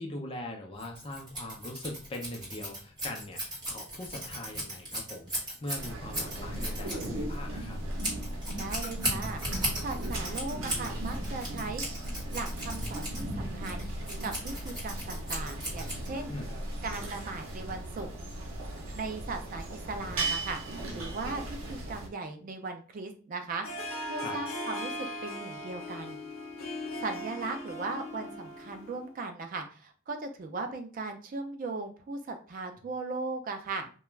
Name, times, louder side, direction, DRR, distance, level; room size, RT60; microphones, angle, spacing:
voice 1, 0.0-7.8 16.3-16.5 24.2-24.4, left 1 dB, 25° left, 1 dB, 0.5 m, -41 dB
Scissors, 0.8-16.4, right 1 dB, 20° right, 1.2 m, -37 dB
sound 1, 5.7-22.1, right 1 dB, 75° right, 0.7 m, -37 dB
voice 2, 8.6-11.8 12.3-13.9 14.2-16.3 16.8-18.1 18.9-20.6 20.9-23.7 24.1-26.2 27.0-33.9, right 3 dB, 40° right, 6 dB, 0.3 m, -38 dB
Harp, 23.6-29.1, left 1 dB, 75° left, 0.7 m, -39 dB
2.3 x 2.2 x 3.1 m, 0.39 s
head